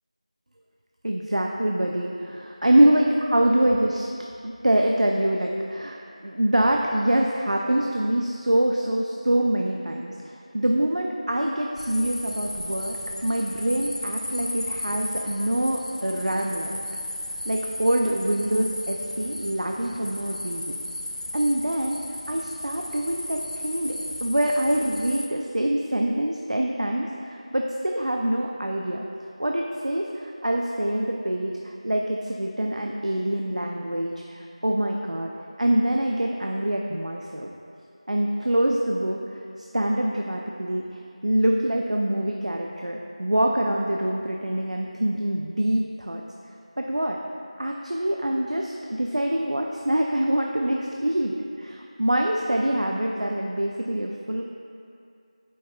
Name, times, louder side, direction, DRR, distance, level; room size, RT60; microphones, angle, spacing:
voice 1, 1.0-4.1 4.4-6.0 6.2-10.1 10.5-16.7 17.4-20.8 21.3-22.0 22.3-29.0 29.4-35.3 35.6-37.5 38.1-39.2 39.7-40.8 41.2-46.2 46.8-47.2 47.6-54.6, right 1 dB, 80° right, 0 dB, 0.5 m, -25 dB
sound 1, 11.8-25.3, left 1 dB, 85° left, 0.5 m, -35 dB
8.3 x 5.4 x 2.3 m, 2.5 s
figure-of-eight pair, 175°, 4 cm